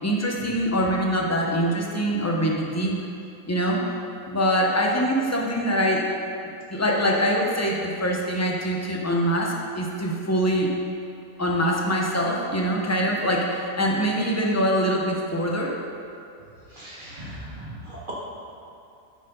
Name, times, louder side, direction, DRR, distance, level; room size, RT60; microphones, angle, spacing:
voice 1, 0.0-3.0 3.5-3.8 4.3-6.1 6.7-10.7 11.4-15.8, equal, 20° left, -2 dB, 0.4 m, -24 dB
voice 2, 16.7-18.1, right 1 dB, 35° right, -6 dB, 1.7 m, -38 dB
9.2 x 4.6 x 5.3 m, 2.7 s
omnidirectional pair, 1.6 m